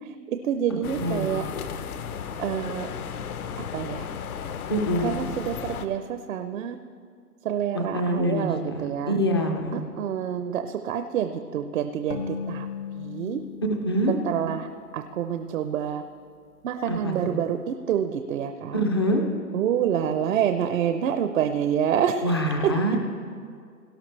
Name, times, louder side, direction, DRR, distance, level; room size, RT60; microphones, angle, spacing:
voice 1, 0.0-1.4 2.4-2.9 3.7-4.1 5.0-6.8 7.4-9.2 10.0-12.7 12.9-13.4 14.2-16.0 16.6-18.8 19.5-22.7, right 9 dB, 60° right, 8 dB, 0.7 m, -27 dB
sound 1, 0.8-5.9, left 7 dB, 70° left, 0.9 m, -34 dB
voice 2, 1.0-1.4 4.7-5.1 7.7-9.8 13.9-14.1 16.9-17.3 18.7-19.2 22.2-23.0, equal, 20° left, 3 dB, 0.4 m, -25 dB
sound 2, 12.1-15.6, left 7 dB, 85° left, 1.8 m, -37 dB
18.0 x 11.5 x 3.3 m, 2.2 s
hypercardioid pair, 150°, 46 cm